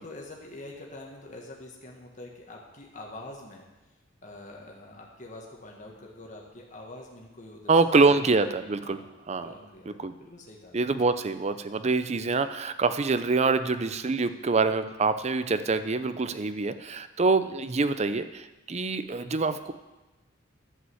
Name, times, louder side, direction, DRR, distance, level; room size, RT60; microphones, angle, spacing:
voice 1, 0.0-3.6 4.2-7.7 8.0-8.4 8.8-10.7, left 2 dB, 40° left, -1 dB, 1.5 m, -45 dB
voice 2, 7.7-9.0 9.3-9.5 10.0-10.1 10.7-19.7, right 3 dB, 35° right, 11 dB, 0.5 m, -25 dB
11.0 x 5.4 x 7.8 m, 1.1 s
head